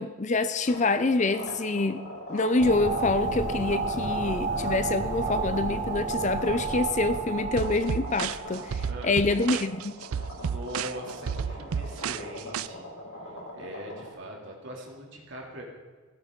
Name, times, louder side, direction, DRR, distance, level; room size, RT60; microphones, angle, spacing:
voice 1, 0.0-2.0 2.3-9.9, left 2 dB, 35° left, 12 dB, 0.5 m, -26 dB
sound 1, 0.6-14.1, left 1 dB, 75° left, 4.8 m, -42 dB
sound 2, 2.6-9.0, right 3 dB, 35° right, 1.2 m, -31 dB
sound 3, 7.6-12.7, right 7 dB, 75° right, 0.4 m, -32 dB
voice 2, 8.9-9.2 10.3-12.9 13.2-15.6, equal, 55° right, -2 dB, 3.1 m, -41 dB
16.0 x 16.0 x 4.0 m, 1.5 s
head